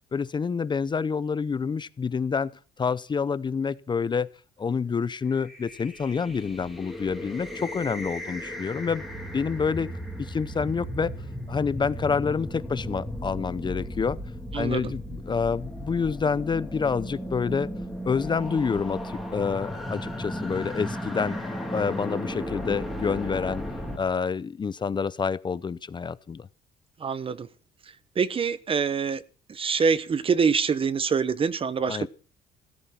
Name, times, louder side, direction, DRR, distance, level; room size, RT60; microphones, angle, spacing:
voice 1, 0.1-2.5 2.8-4.3 4.6-9.9 10.2-11.1 11.5-14.2 14.5-17.7 18.0-21.4 21.7-23.6 24.0-26.5 31.9-32.1, left 5 dB, 25° left, 0.7 m, -28 dB
sound 1, 5.4-24.0, equal, ahead, 3.5 m, -35 dB
voice 2, 14.5-14.9 27.0-27.5 28.1-29.2 29.5-32.1, right 6 dB, 30° right, 1.1 m, -25 dB
16.5 x 13.5 x 5.9 m
cardioid pair, 110°, 17 cm